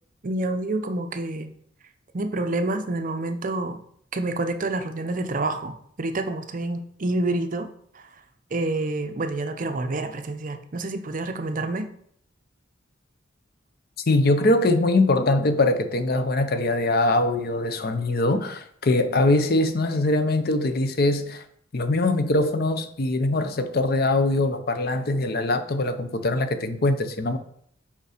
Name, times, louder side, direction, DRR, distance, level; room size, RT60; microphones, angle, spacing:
voice 1, 0.2-1.5 2.1-3.8 4.1-7.7 7.9-8.0 8.5-11.9, right 2 dB, 45° right, 0.6 m, -28 dB
voice 2, 14.1-21.4 21.7-27.4, left 2 dB, 50° left, 0.6 m, -22 dB
5.3 x 5.1 x 5.0 m
head